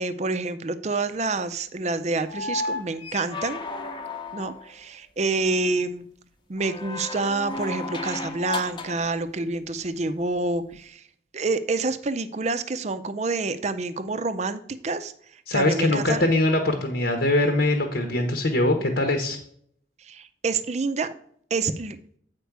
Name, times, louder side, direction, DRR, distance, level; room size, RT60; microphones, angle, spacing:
voice 1, 0.0-3.6 4.3-6.1 6.5-11.0 11.3-15.1 15.5-16.3 20.1-21.1 21.5-22.0, right 3 dB, 35° right, 12 dB, 0.5 m, -27 dB
sound 1, 2.2-4.7 6.6-9.1 10.7-10.8, left 3 dB, 25° left, 0.8 m, -33 dB
voice 2, 15.5-19.4, left 1 dB, 65° left, 4 dB, 1.1 m, -22 dB
8.1 x 5.3 x 4.6 m, 0.64 s
head